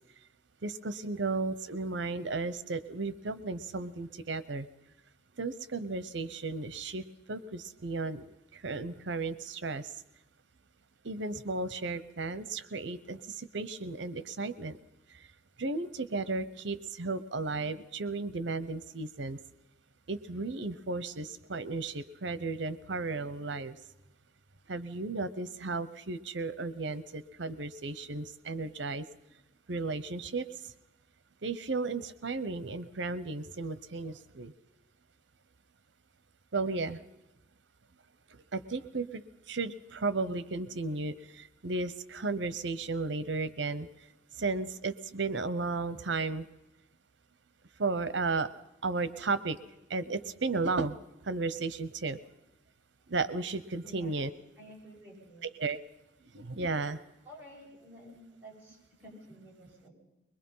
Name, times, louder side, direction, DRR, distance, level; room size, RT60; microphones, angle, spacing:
voice 1, 0.6-4.7 5.4-8.3 8.5-9.9 11.0-14.8 15.6-19.4 20.1-23.8 24.7-29.0 29.7-30.5 31.4-34.5 36.5-37.0 38.5-39.2 39.5-43.9 44.4-46.5 47.8-48.5 48.8-49.6 49.9-51.0 51.2-52.2 53.1-54.3 55.6-55.8 56.3-57.0, right 3 dB, 75° right, 15 dB, 0.9 m, -34 dB
voice 2, 53.8-54.3 54.6-55.5 57.2-59.9, equal, 10° right, -6 dB, 7.5 m, -51 dB
22.0 x 21.5 x 5.6 m, 0.93 s
head